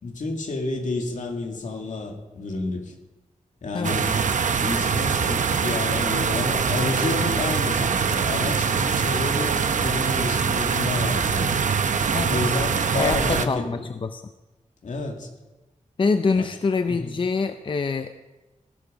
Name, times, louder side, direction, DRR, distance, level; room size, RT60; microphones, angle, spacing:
voice 1, 0.0-2.9 3.6-4.2 4.6-11.6 12.3-13.9 14.8-15.3 16.4-16.5 16.9-17.1, left 3 dB, 75° left, 2 dB, 2.4 m, -30 dB
sound 1, 3.8-13.5, right 6 dB, 80° right, 0.8 m, -23 dB
voice 2, 12.1-12.5 12.9-14.2 16.0-18.1, left 4 dB, 40° left, 8 dB, 0.6 m, -25 dB
18.0 x 11.0 x 5.1 m, 1.1 s
wide cardioid pair, 130°, 13 cm